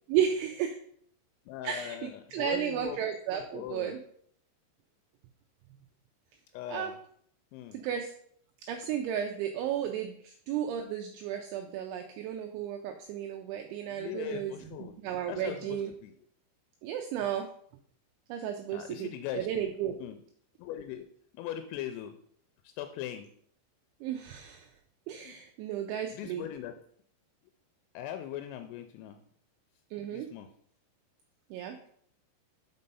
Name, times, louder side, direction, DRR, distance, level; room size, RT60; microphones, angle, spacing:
voice 1, 0.1-0.8 1.6-4.0 6.7-6.9 7.7-8.1 8.7-15.9 16.8-17.5 18.3-19.1 19.3-19.9 24.0-24.7 25.1-26.4 29.9-30.3 31.5-31.8, right 9 dB, 85° right, 4 dB, 2.7 m, -33 dB
voice 2, 1.5-3.0 3.3-4.0 6.5-7.0 7.5-7.8 13.9-15.0 15.3-16.1 18.7-19.7 20.0-20.2 20.6-21.1 21.3-22.2 22.6-23.3 25.2-25.3 26.1-26.8 27.9-29.2 30.1-30.5, left 11 dB, 85° left, 7 dB, 3.1 m, -40 dB
6.2 x 5.4 x 5.4 m, 0.64 s
omnidirectional pair, 5.9 m